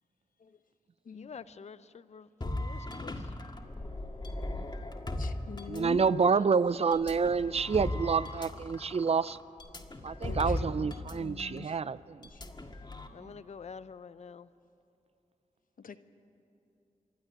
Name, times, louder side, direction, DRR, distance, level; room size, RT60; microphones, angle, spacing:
voice 1, 1.1-3.2 13.1-14.5, left 6 dB, 55° left, 0.5 m, -47 dB
sound 1, 2.4-6.3 6.9-11.1 11.4-11.6 12.2-13.1, left 1 dB, 30° left, 1.7 m, -37 dB
voice 2, 5.2-6.4 10.2-11.8 12.3-12.4 15.8-16.0, left 6 dB, 80° left, 0.9 m, -43 dB
voice 3, 5.7-9.4 10.0-12.3, right 5 dB, 45° right, 0.4 m, -28 dB
26.0 x 11.5 x 9.9 m
wide cardioid pair, 70°, 14 cm